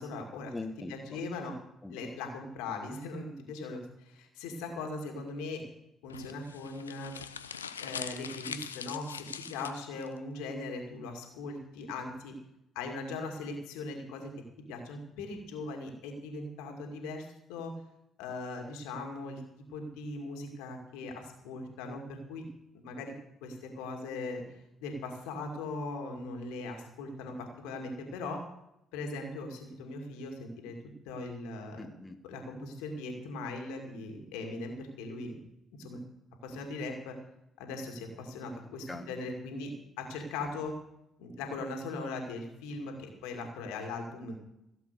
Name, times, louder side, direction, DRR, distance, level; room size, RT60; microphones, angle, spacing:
voice 1, 0.0-0.5 0.9-1.6 1.9-5.6 6.0-7.1 7.8-12.3 12.7-14.3 14.7-17.7 18.2-19.4 19.7-22.5 22.7-23.1 23.4-24.4 24.8-28.4 28.9-30.8 31.1-31.8 32.2-35.3 35.8-36.0 36.4-37.2 37.6-39.7 40.0-40.7 41.2-44.4, left 3 dB, 70° left, 3 dB, 2.3 m, -39 dB
voice 2, 0.5-1.2 1.8-2.0 31.8-32.2 38.9-39.1, left 3 dB, 20° left, 4 dB, 1.6 m, -42 dB
sound 1, 6.1-10.1, left 7 dB, 90° left, 0.5 m, -42 dB
16.5 x 7.8 x 6.6 m, 0.84 s
figure-of-eight pair, 45°, 0 cm